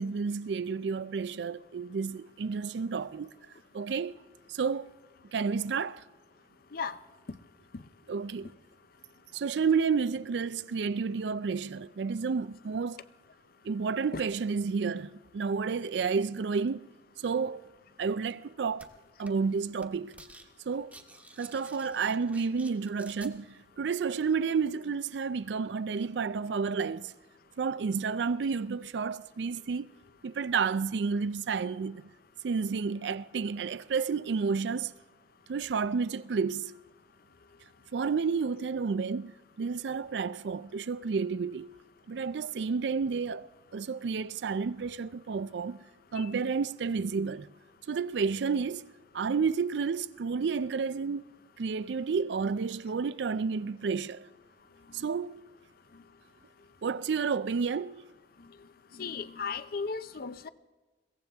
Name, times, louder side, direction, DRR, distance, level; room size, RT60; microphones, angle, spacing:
voice 1, 0.0-3.3 3.7-4.2 4.5-4.9 5.3-6.0 8.1-8.5 9.3-13.0 13.6-16.9 17.2-17.6 18.0-18.9 19.2-20.2 20.7-20.9 21.4-27.1 27.6-29.9 30.2-32.0 32.4-34.9 35.5-36.7 37.9-41.7 42.1-43.5 43.7-45.8 46.1-47.5 47.9-48.9 49.1-51.2 51.6-54.3 54.9-55.4 56.8-58.0, right 5 dB, 70° right, 0.4 m, -31 dB
sound 1, 18.8-18.9 19.3-19.5 19.8-20.5 20.7-23.3, right 2 dB, 10° right, 1.2 m, -51 dB
voice 2, 59.0-60.5, left 5 dB, 55° left, 0.6 m, -35 dB
22.5 x 16.5 x 3.5 m
head